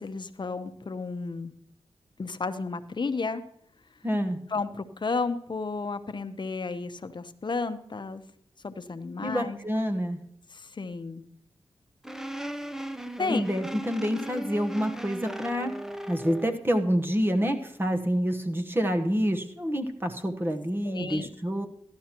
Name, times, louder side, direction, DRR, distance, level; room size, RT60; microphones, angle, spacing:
voice 1, 0.0-1.5 2.2-3.4 4.5-8.2 8.6-9.6 10.5-11.2 13.2-13.5 20.8-21.3, left 4 dB, 45° left, 10 dB, 0.8 m, -32 dB
voice 2, 4.0-4.4 9.2-10.2 13.3-21.7, equal, 20° right, 4 dB, 1.1 m, -27 dB
sound 1, 12.0-16.6, right 1 dB, 5° right, 0.6 m, -37 dB
14.5 x 11.5 x 3.0 m, 0.68 s
cardioid pair, 65°, 11 cm